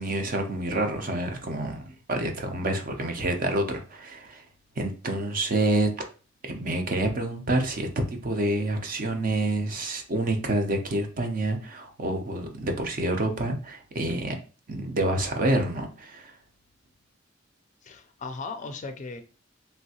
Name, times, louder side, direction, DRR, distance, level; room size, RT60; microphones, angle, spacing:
voice 1, 0.0-4.4 4.8-5.9 6.4-7.9 8.2-14.4 14.7-16.3, right 2 dB, 45° right, 0.6 m, -28 dB
voice 2, 17.8-19.2, left 4 dB, 40° left, 0.4 m, -37 dB
3.3 x 2.7 x 2.7 m
head